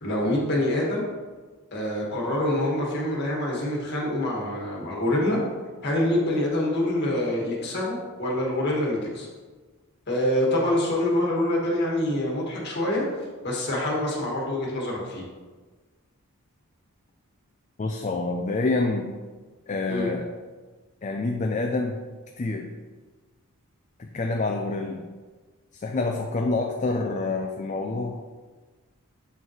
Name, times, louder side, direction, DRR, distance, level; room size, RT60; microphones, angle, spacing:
voice 1, 0.0-1.1 1.7-5.4 5.8-9.3 10.1-13.1 13.4-15.2 19.9-20.1, left 1 dB, 50° left, -3 dB, 1.8 m, -25 dB
voice 2, 17.8-19.1 19.7-20.3 21.0-22.0 22.4-22.7 24.0-25.0 25.7-28.2, left 3 dB, 35° left, 2 dB, 0.4 m, -27 dB
7.3 x 5.5 x 3.2 m, 1.4 s
head